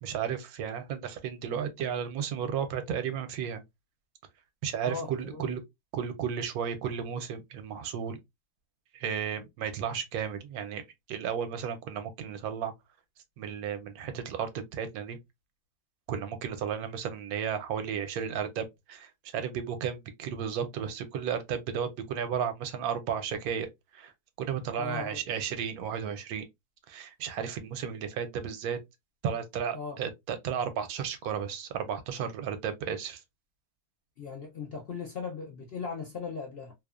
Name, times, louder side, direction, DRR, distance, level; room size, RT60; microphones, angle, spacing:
voice 1, 0.0-3.6 4.6-5.6 5.9-8.2 8.9-10.8 11.1-12.7 13.4-15.2 16.1-23.7 23.9-24.1 24.4-26.4 26.9-28.8 29.2-33.2, right 8 dB, 80° right, 1.0 m, -33 dB
voice 2, 4.8-5.5 24.8-25.2 29.7-30.0 34.2-36.7, left 5 dB, 65° left, 0.6 m, -38 dB
2.8 x 2.0 x 2.2 m
omnidirectional pair, 1.6 m